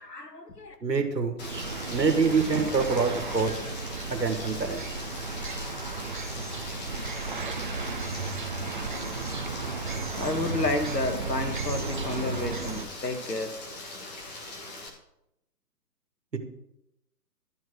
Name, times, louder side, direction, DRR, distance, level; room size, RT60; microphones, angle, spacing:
voice 1, 0.0-0.8 10.2-13.5, left 2 dB, 75° left, 5 dB, 1.9 m, -31 dB
voice 2, 0.8-1.4 1.9-3.5 4.1-4.8 16.3-16.4, right 4 dB, 80° right, 6 dB, 1.7 m, -25 dB
Rain, 1.4-14.9, left 2 dB, 25° left, 1.4 m, -41 dB
sound 1, 1.4-12.9, right 4 dB, 30° right, 0.7 m, -34 dB
12.0 x 4.8 x 6.3 m, 0.84 s
figure-of-eight pair, 140°, 49 cm